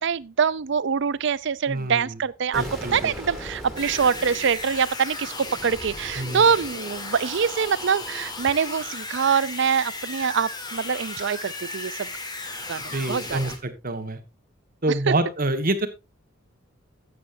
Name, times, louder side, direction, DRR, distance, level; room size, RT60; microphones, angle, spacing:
voice 1, 0.0-2.6 2.9-12.1 12.7-13.4, right 6 dB, 60° right, 0.5 m, -24 dB
voice 2, 1.7-2.2 2.5-3.1 6.1-6.6 12.9-14.2 14.8-15.9, right 2 dB, 45° right, 1.6 m, -27 dB
Explosion, 2.5-5.4, equal, ahead, 2.8 m, -38 dB
sound 1, 3.8-13.6, left 3 dB, 20° left, 1.7 m, -35 dB
13.0 x 8.6 x 2.6 m
head